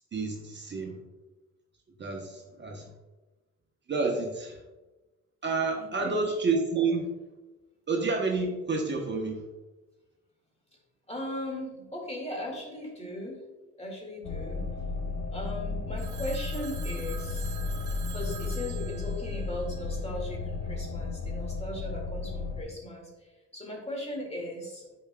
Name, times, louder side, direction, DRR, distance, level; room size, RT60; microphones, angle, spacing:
voice 1, 0.1-1.0 2.0-2.9 3.9-4.6 5.4-7.1 7.9-9.4, right 4 dB, 35° right, 1 dB, 0.9 m, -29 dB
voice 2, 5.8-6.2 11.1-13.4 13.8-14.6 15.3-17.6 18.1-24.8, left 1 dB, 20° left, -1 dB, 2.0 m, -38 dB
sound 1, 14.2-22.6, left 3 dB, 65° left, 0.9 m, -34 dB
Telephone, 16.0-20.2, right 10 dB, 70° right, 0.8 m, -45 dB
8.7 x 4.9 x 2.2 m, 1.1 s
cardioid pair, 90°, 30 cm